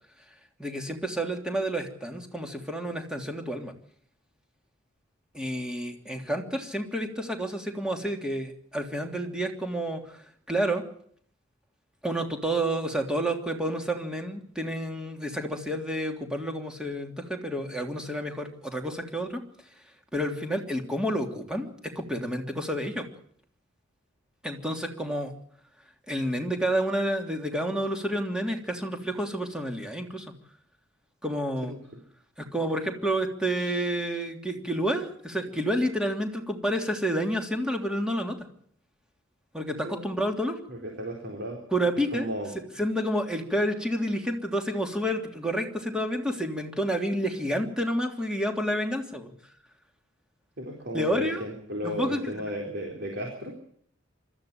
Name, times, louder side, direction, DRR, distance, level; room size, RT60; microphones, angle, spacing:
voice 1, 0.6-3.7 5.3-10.2 10.5-10.8 12.0-19.4 20.1-23.0 24.4-25.3 26.1-30.3 31.2-31.7 32.4-38.4 39.5-40.6 41.7-42.3 42.8-49.3 50.9-51.4 51.8-52.4, equal, 5° right, 3 dB, 3.1 m, -29 dB
voice 2, 40.7-41.6 42.1-42.5 50.6-53.5, equal, 60° right, 0 dB, 4.1 m, -34 dB
25.0 x 13.5 x 8.8 m, 0.62 s
head